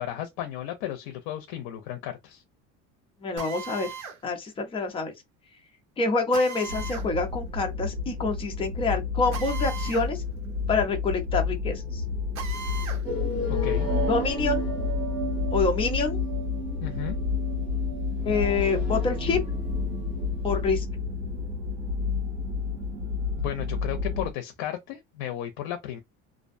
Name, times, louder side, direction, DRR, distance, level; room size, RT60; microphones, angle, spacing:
voice 1, 0.0-2.4 13.5-13.9 16.8-17.2 23.4-26.0, left 11 dB, 70° left, 0.6 m, -34 dB
voice 2, 3.2-3.9 4.2-5.1 6.0-10.2 10.7-12.0 14.0-14.7 15.5-16.2 18.2-19.4 20.4-20.8, left 3 dB, 15° left, 0.5 m, -27 dB
Drill, 3.4-4.2 6.3-7.1 9.3-10.1 10.4-10.5 12.3-13.0, right 6 dB, 55° right, 0.9 m, -37 dB
sound 1, 6.7-24.3, left 5 dB, 80° right, 1.1 m, -30 dB
sound 2, 13.0-20.7, right 1 dB, 5° right, 1.1 m, -34 dB
2.5 x 2.1 x 2.6 m
cardioid pair, 160°, 33 cm